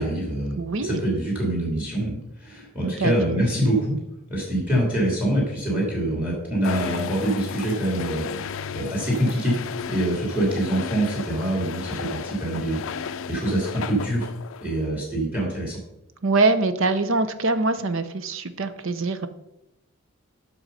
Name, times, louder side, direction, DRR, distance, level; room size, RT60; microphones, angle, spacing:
voice 1, 0.0-4.0 4.3-9.5 9.9-14.3 14.6-15.8, right 1 dB, 5° right, -3 dB, 2.6 m, -25 dB
voice 2, 0.6-1.0 3.0-3.1 16.2-19.3, right 3 dB, 60° right, 11 dB, 0.7 m, -23 dB
sound 1, 6.6-14.8, left 7 dB, 65° left, 0.4 m, -34 dB
8.0 x 6.2 x 5.5 m, 0.91 s
head